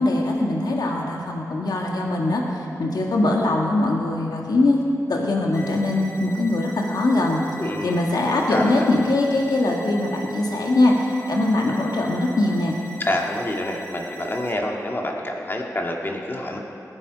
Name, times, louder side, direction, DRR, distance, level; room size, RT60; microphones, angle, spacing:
voice 1, 0.0-4.8 5.1-7.4 7.8-12.8, left 2 dB, 80° left, 0 dB, 1.6 m, -22 dB
sound 1, 5.5-14.5, right 1 dB, 50° left, 2.8 m, -41 dB
voice 2, 7.6-8.0 8.5-8.9 13.0-16.6, left 1 dB, 35° left, 0 dB, 1.9 m, -27 dB
20.5 x 8.9 x 5.1 m, 2.7 s
wide cardioid pair, 85°, 7 cm